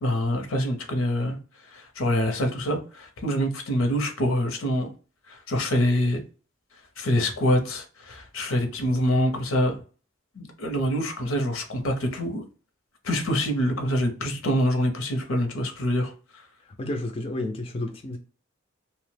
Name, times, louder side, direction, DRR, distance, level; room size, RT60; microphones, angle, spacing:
voice 1, 0.0-1.4 1.7-4.9 5.3-6.2 7.0-9.8 10.4-12.4 13.0-16.1, equal, 80° left, 0.7 m, -25 dB
voice 2, 16.6-18.2, left 1 dB, 25° left, 0.3 m, -31 dB
2.8 x 2.0 x 3.2 m
head